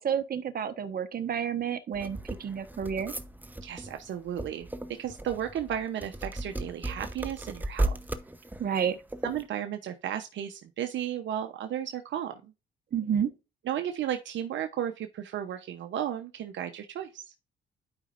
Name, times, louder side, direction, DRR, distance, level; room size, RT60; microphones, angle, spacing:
voice 1, 0.0-3.1 8.6-9.0 12.9-13.3, right 8 dB, 50° right, 1.3 m, -30 dB
sound 1, 1.9-9.5, right 1 dB, 10° right, 0.8 m, -35 dB
voice 2, 3.6-4.7 5.0-7.9 8.9-9.0 9.2-12.5 13.7-17.2, right 10 dB, 70° right, 0.9 m, -34 dB
12.0 x 5.2 x 2.6 m
cardioid pair, 90°, 20 cm